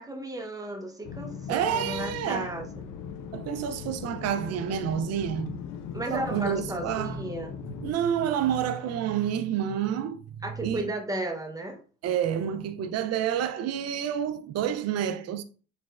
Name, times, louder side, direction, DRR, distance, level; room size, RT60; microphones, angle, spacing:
voice 1, 0.0-2.9 5.9-7.6 10.4-11.8, right 1 dB, 10° right, 0.8 m, -34 dB
sound 1, 1.0-7.9, left 7 dB, 70° left, 0.6 m, -39 dB
voice 2, 1.5-2.5 3.3-5.6 6.1-7.2 7.8-10.9 12.0-15.4, right 9 dB, 50° right, 0.5 m, -29 dB
4.0 x 3.3 x 2.4 m
supercardioid pair, 80°, 33 cm